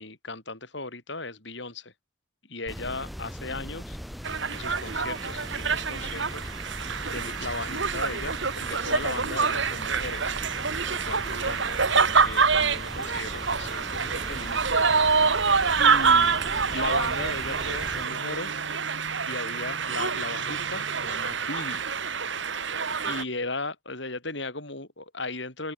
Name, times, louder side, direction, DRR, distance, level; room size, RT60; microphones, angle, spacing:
voice 1, 0.0-1.9 2.5-4.0 4.5-6.5 7.1-10.4 10.9-11.8 12.1-14.8 15.8-16.4 16.7-18.6 19.3-21.8 23.1-25.7, left 3 dB, 60° left, 5.6 m, -36 dB
sound 1, 2.7-18.0, equal, ahead, 1.0 m, -39 dB
sound 2, 4.2-23.2, right 5 dB, 65° right, 2.0 m, -26 dB
open air
head